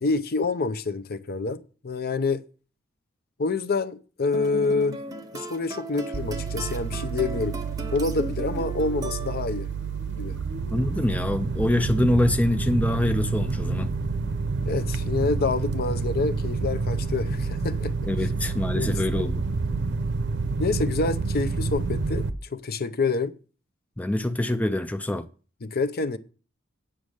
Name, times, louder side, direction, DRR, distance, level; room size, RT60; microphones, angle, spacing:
voice 1, 0.0-2.4 3.4-5.0 5.3-7.6 7.9-9.7 10.2-10.4 14.7-17.9 18.7-19.2 20.6-23.3 25.6-26.2, left 3 dB, 50° left, 0.7 m, -27 dB
sound 1, 4.3-9.7, right 1 dB, 20° right, 0.8 m, -37 dB
sound 2, 6.1-22.3, right 4 dB, 60° right, 0.7 m, -28 dB
voice 2, 10.7-13.9 18.0-19.4 24.0-25.3, left 1 dB, 5° left, 0.4 m, -25 dB
8.8 x 6.3 x 6.4 m
head